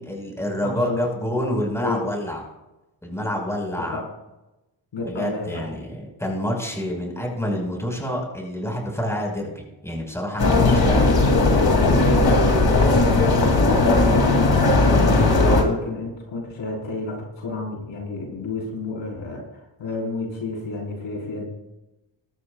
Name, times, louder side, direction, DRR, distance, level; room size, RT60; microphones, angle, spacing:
voice 1, 0.0-2.5 3.0-4.0 5.0-11.0, equal, 5° left, 0 dB, 5.2 m, -27 dB
voice 2, 0.6-1.0 1.8-2.1 3.8-4.1 4.9-5.7 10.5-11.1 11.5-19.5 19.8-21.5, left 2 dB, 70° left, -1 dB, 4.8 m, -30 dB
sound 1, 10.4-15.6, left 2 dB, 50° left, 2.9 m, -17 dB
21.5 x 12.5 x 2.4 m, 0.98 s
cardioid pair, 95°, 46 cm